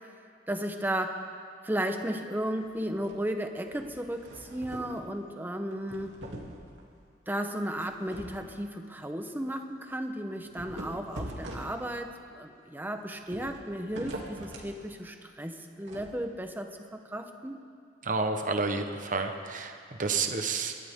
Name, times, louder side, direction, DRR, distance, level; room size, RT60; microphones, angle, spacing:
voice 1, 0.5-1.2 1.6-6.2 7.3-17.6, right 1 dB, 10° right, 5 dB, 1.0 m, -34 dB
sound 1, 2.6-3.3 3.6-5.0 5.7-6.9 7.8-8.4 8.8-8.9 9.3-9.4 10.4-12.1 13.2-14.7 15.9-16.1, right 1 dB, 85° right, 2.8 m, -43 dB
voice 2, 18.0-20.7, right 4 dB, 45° right, 5 dB, 1.1 m, -30 dB
28.0 x 13.5 x 3.7 m, 2.3 s
head